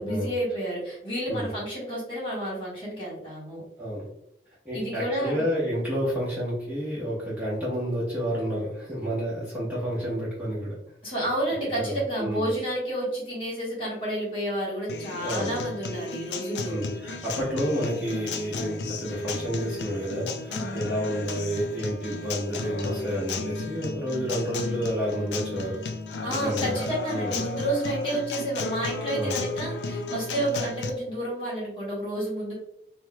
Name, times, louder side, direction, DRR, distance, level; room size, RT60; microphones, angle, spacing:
voice 1, 0.0-3.6 4.7-5.4 11.0-16.7 20.5-20.9 26.2-32.5, right 1 dB, 30° left, -6 dB, 1.4 m, -30 dB
voice 2, 4.6-10.8 11.0-11.1 11.6-12.5 15.2-15.5 16.7-25.8 26.4-26.7 27.1-27.3 29.1-29.4, equal, 10° right, -9 dB, 0.9 m, -30 dB
Acoustic guitar, 14.9-30.9, left 3 dB, 80° left, 0.4 m, -34 dB
4.4 x 2.1 x 2.2 m, 0.77 s
head